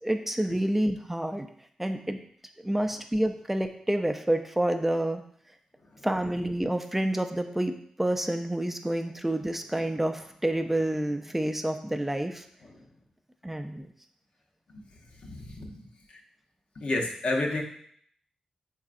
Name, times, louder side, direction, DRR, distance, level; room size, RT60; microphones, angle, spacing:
voice 1, 0.0-1.5 1.8-2.2 2.6-5.2 6.0-12.5 13.4-13.9, right 1 dB, 10° right, 5 dB, 0.4 m, -28 dB
voice 2, 15.2-16.2 16.8-17.6, left 2 dB, 65° left, 0 dB, 0.7 m, -32 dB
3.8 x 3.5 x 2.4 m, 0.63 s
cardioid pair, 50°, 2 cm